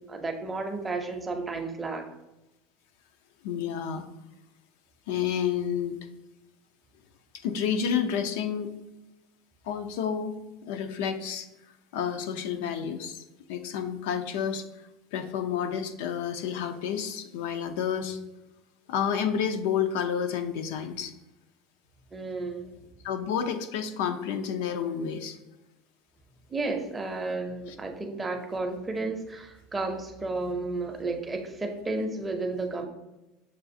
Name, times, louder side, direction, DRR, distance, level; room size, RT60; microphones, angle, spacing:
voice 1, 0.0-2.1 22.1-22.8 26.5-32.8, right 3 dB, 15° right, 4 dB, 0.6 m, -32 dB
voice 2, 3.4-4.1 5.1-6.0 7.4-8.8 9.6-10.4 10.6-11.5 11.9-13.2 13.5-14.6 15.1-18.2 18.9-21.1 23.0-25.4, left 8 dB, 75° left, 8 dB, 0.5 m, -30 dB
6.7 x 2.4 x 2.6 m, 0.97 s
supercardioid pair, 135°, 0 cm